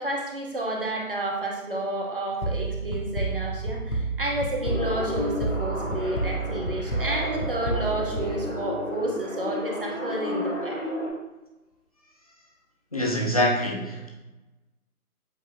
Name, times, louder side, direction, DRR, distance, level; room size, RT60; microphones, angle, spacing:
voice 1, 0.0-10.8, right 1 dB, 35° right, -1 dB, 1.2 m, -30 dB
sound 1, 2.4-9.0, right 3 dB, 90° left, 1.3 m, -30 dB
sound 2, 4.6-11.1, left 2 dB, 10° left, 1.7 m, -33 dB
voice 2, 12.9-14.1, left 1 dB, 25° left, -2 dB, 0.8 m, -25 dB
8.0 x 3.5 x 3.9 m, 1.0 s
figure-of-eight pair, 160°, 45 cm